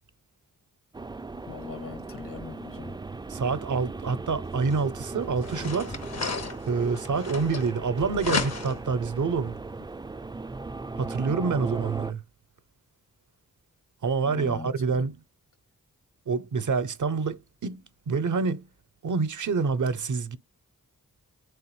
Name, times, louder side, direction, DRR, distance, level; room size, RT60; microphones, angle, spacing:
sound 1, 0.9-12.1, right 3 dB, 15° right, 0.3 m, -37 dB
voice 1, 1.5-3.0 14.2-15.1, left 5 dB, 70° left, 1.8 m, -41 dB
voice 2, 3.3-5.9 6.7-9.6 11.0-12.2 14.0-15.2 16.3-18.6 19.0-20.4, right 5 dB, 60° right, 0.6 m, -27 dB
sound 2, 4.7-4.8 5.4-7.9 8.2-8.9, left 4 dB, 50° left, 0.8 m, -33 dB
3.5 x 3.3 x 3.0 m
cardioid pair, 45°, 35 cm